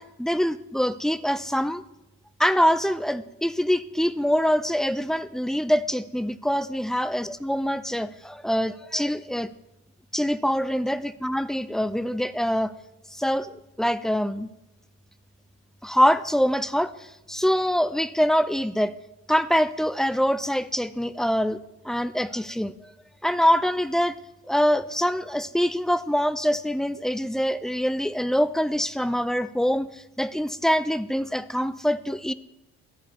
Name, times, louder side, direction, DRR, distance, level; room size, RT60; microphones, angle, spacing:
voice 1, 0.0-1.8 2.4-9.5 10.1-12.7 13.1-14.5 15.8-18.9 19.3-21.6 21.8-22.9 23.2-24.2 24.5-32.3, equal, ahead, 14 dB, 0.3 m, -24 dB
14.0 x 5.0 x 3.5 m, 0.94 s
cardioid pair, 90°, 30 cm